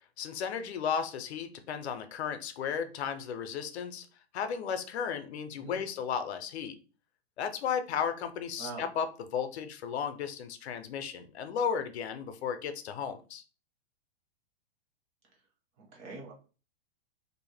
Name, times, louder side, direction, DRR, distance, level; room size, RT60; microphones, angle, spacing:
voice 1, 0.2-4.1 4.3-6.8 7.4-13.4, left 7 dB, 80° left, 0.5 m, -34 dB
voice 2, 15.8-16.3, right 3 dB, 35° right, 1.0 m, -43 dB
2.5 x 2.1 x 3.2 m
hypercardioid pair, 140°, 32 cm